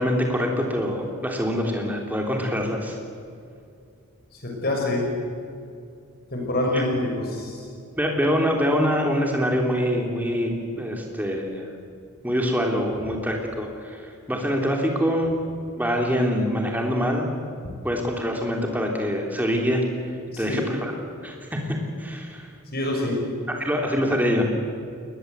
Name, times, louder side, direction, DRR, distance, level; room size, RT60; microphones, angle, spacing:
voice 1, 0.0-3.0 6.7-6.8 8.0-11.6 12.2-15.3 15.8-17.3 17.8-19.8 20.4-20.9 21.2-22.5 23.5-24.4, equal, 10° right, 1 dB, 3.2 m, -25 dB
voice 2, 4.4-5.1 6.3-7.6 20.3-20.6 22.7-23.2, left 1 dB, 45° left, 0 dB, 6.1 m, -26 dB
21.5 x 20.0 x 8.1 m, 2.4 s
head